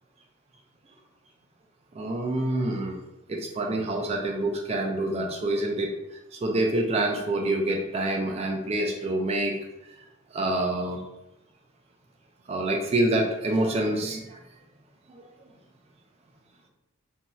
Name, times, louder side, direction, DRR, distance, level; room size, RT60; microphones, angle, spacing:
voice 1, 1.9-3.0 3.3-5.9 6.3-9.6 10.3-11.0 12.5-14.4 15.1-15.2, right 1 dB, 30° right, 2 dB, 0.3 m, -27 dB
2.7 x 2.2 x 3.0 m, 0.92 s
head